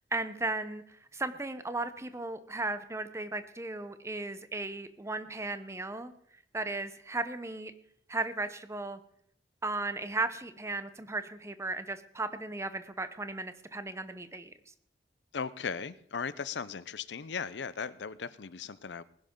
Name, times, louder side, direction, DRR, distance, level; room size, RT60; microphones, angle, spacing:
voice 1, 0.1-6.1 6.5-7.7 8.1-9.0 9.6-14.5, right 2 dB, 15° right, 11 dB, 0.8 m, -36 dB
voice 2, 15.3-19.0, left 6 dB, 90° left, 16 dB, 0.6 m, -37 dB
20.0 x 10.5 x 3.8 m, 0.69 s
head